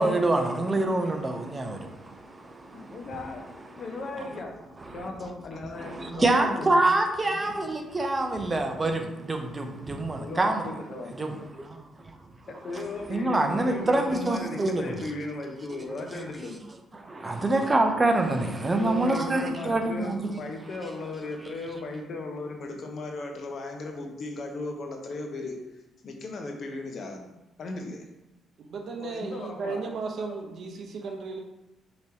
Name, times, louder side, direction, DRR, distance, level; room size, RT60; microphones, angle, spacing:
voice 1, 0.0-3.0 4.2-4.3 4.9-5.1 5.8-10.7 11.1-11.8 12.7-12.8 13.1-15.1 16.9-20.5, right 2 dB, 25° right, 0.7 m, -26 dB
voice 2, 2.7-4.5 4.9-6.8 10.2-11.5 12.5-16.7 18.6-25.6 26.0-27.3 27.6-28.1 29.0-29.9, left 2 dB, 55° left, 0.9 m, -37 dB
voice 3, 28.6-31.4, right 4 dB, 60° right, 0.8 m, -35 dB
5.8 x 3.2 x 2.9 m
cardioid pair, 90°, 0 cm